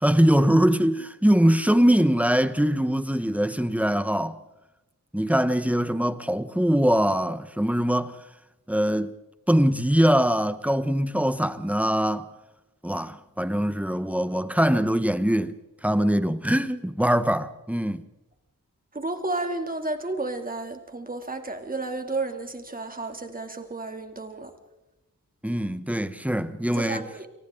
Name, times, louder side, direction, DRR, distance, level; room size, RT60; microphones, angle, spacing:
voice 1, 0.0-4.4 5.1-8.2 8.7-9.1 9.5-12.3 12.8-15.5 15.8-18.0 25.4-27.1, equal, 5° right, 1.1 m, -22 dB
voice 2, 18.9-24.5 26.8-27.3, right 2 dB, 25° right, 2.7 m, -32 dB
29.5 x 24.0 x 3.8 m
wide cardioid pair, 115°, 33 cm